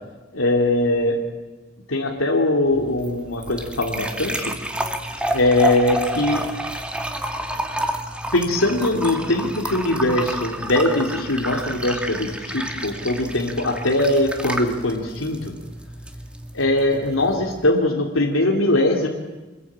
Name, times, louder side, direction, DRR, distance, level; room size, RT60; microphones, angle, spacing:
voice 1, 0.3-1.2 1.9-4.5 5.3-6.5 8.3-15.4 16.5-19.1, left 1 dB, 90° left, 0 dB, 3.2 m, -21 dB
sound 1, 2.7-17.7, right 1 dB, 5° right, 2.1 m, -30 dB
27.5 x 21.0 x 9.0 m, 1.2 s
head